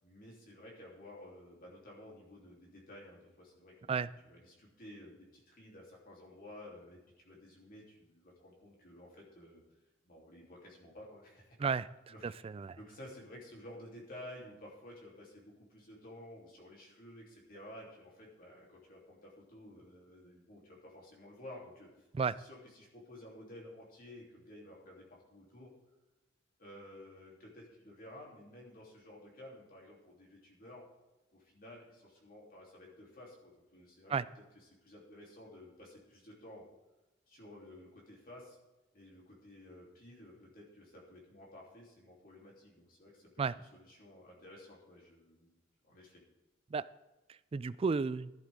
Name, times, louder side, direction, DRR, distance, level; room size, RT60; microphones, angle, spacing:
voice 1, 0.0-9.6 10.0-11.7 12.1-12.4 12.8-22.1 22.3-25.7 26.6-30.8 31.3-34.1 34.5-36.6 37.3-38.6 38.9-46.2, left 1 dB, 45° left, -3 dB, 3.2 m, -53 dB
voice 2, 12.2-12.8 22.1-22.3 34.1-34.2 43.4-43.5 46.7-46.9 47.5-48.3, right 5 dB, 30° right, 17 dB, 0.3 m, -32 dB
15.0 x 10.5 x 3.6 m, 1.0 s
head